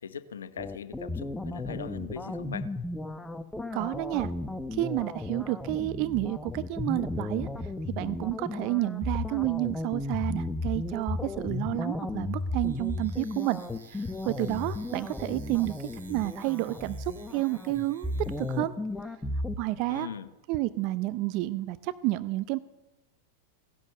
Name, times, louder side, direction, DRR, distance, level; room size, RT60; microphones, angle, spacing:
voice 1, 0.0-2.7 19.9-20.3, left 7 dB, 80° left, 13 dB, 0.9 m, -40 dB
sound 1, 0.6-19.6, left 2 dB, 10° left, 1.0 m, -35 dB
voice 2, 3.7-4.3 4.7-7.5 7.9-13.6 13.9-15.7 16.1-18.1 18.4-18.7 19.6-20.1 20.5-22.6, right 18 dB, 50° right, 15 dB, 0.6 m, -30 dB
sound 2, 12.6-18.6, right 5 dB, 85° right, 2.5 m, -54 dB
17.0 x 10.5 x 6.7 m, 1.0 s
hypercardioid pair, 95°, 0 cm